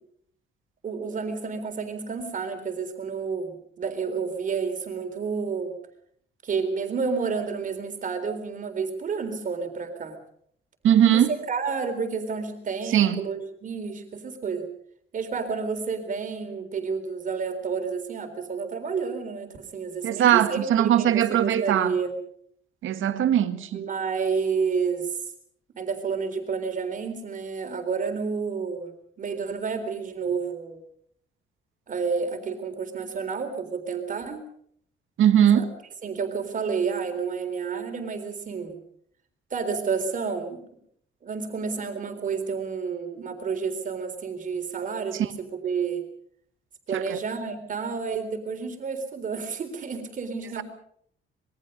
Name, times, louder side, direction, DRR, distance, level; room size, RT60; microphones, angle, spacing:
voice 1, 0.8-5.8 6.4-10.2 11.1-14.7 15.1-22.2 23.7-25.1 25.7-30.8 31.9-34.4 35.5-35.7 36.0-38.8 39.5-40.6 41.2-46.0 46.9-50.6, right 5 dB, 40° right, 3.8 m, -30 dB
voice 2, 10.8-11.3 12.9-13.2 20.0-21.9 22.8-23.8 35.2-35.6 45.2-45.3 46.9-47.2 50.6-50.7, right 10 dB, 70° right, 1.9 m, -20 dB
26.0 x 22.0 x 5.3 m
cardioid pair, 175°, 21 cm